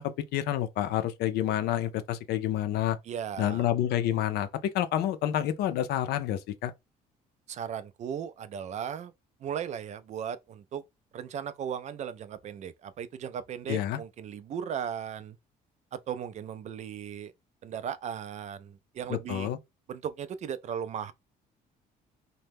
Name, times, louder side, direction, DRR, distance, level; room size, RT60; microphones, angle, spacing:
voice 1, 0.0-3.0 3.4-4.5 4.7-6.7 13.7-14.0 19.3-19.6, left 11 dB, 75° left, 0.5 m, -28 dB
voice 2, 3.0-3.6 7.5-9.1 9.4-10.8 11.1-15.4 15.9-17.3 17.6-19.5 19.9-21.1, right 8 dB, 45° right, 0.4 m, -37 dB
2.8 x 2.1 x 3.4 m
cardioid pair, 110°, 17 cm